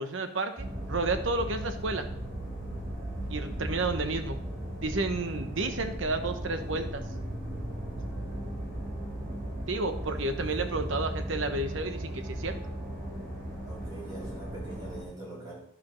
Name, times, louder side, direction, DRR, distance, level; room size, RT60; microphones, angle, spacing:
voice 1, 0.0-2.1 3.3-4.4 4.8-7.0 9.7-12.6, right 3 dB, 70° right, 7 dB, 1.0 m, -31 dB
sound 1, 0.6-15.0, right 1 dB, 50° right, 3.3 m, -36 dB
voice 2, 10.0-10.7 13.7-15.6, right 2 dB, 20° right, -6 dB, 3.9 m, -44 dB
11.5 x 4.6 x 6.1 m, 0.71 s
head